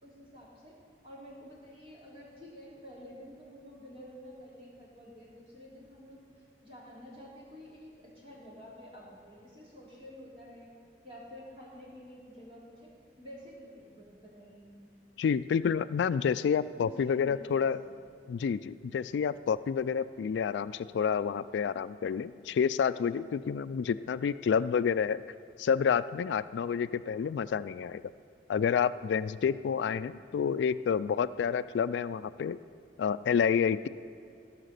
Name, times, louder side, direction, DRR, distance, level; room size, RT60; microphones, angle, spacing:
voice 1, 0.0-0.8 1.0-10.7 11.0-12.9 13.2-14.8 16.7-17.7 17.9-18.1, equal, 30° right, -6 dB, 3.1 m, -50 dB
voice 2, 15.2-17.8 18.3-25.2 25.6-28.0 28.5-32.6 33.0-33.9, left 7 dB, 85° left, 14 dB, 0.3 m, -29 dB
16.5 x 5.7 x 6.7 m, 2.5 s
head